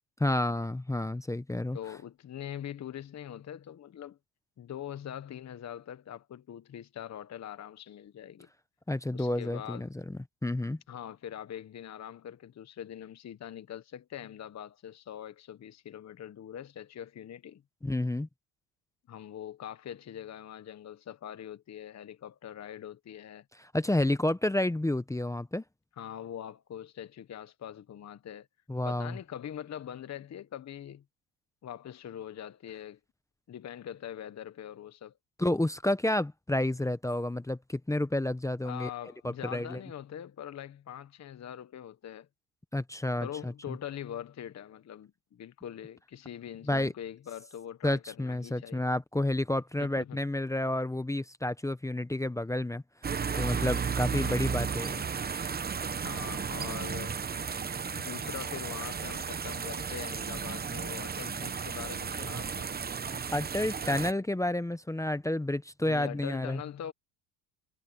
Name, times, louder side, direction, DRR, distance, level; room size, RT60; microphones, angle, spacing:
voice 1, 0.2-1.8 8.9-10.8 17.8-18.3 23.6-25.6 28.7-29.2 35.4-38.9 39.2-39.8 42.7-43.8 46.7-46.9 47.8-52.8 53.3-55.0 63.3-66.6, left 1 dB, 5° left, 1.0 m, -30 dB
voice 2, 1.7-4.2 4.6-8.5 9.1-9.9 10.9-17.6 19.1-23.4 26.0-28.5 28.8-31.0 31.6-33.0 33.5-35.1 38.6-42.3 43.2-48.8 49.8-50.2 56.0-57.2 57.9-62.7 65.8-66.9, left 10 dB, 35° left, 1.2 m, -43 dB
sound 1, 53.0-64.1, right 6 dB, 20° right, 1.0 m, -34 dB
supercardioid pair, 100°, 48 cm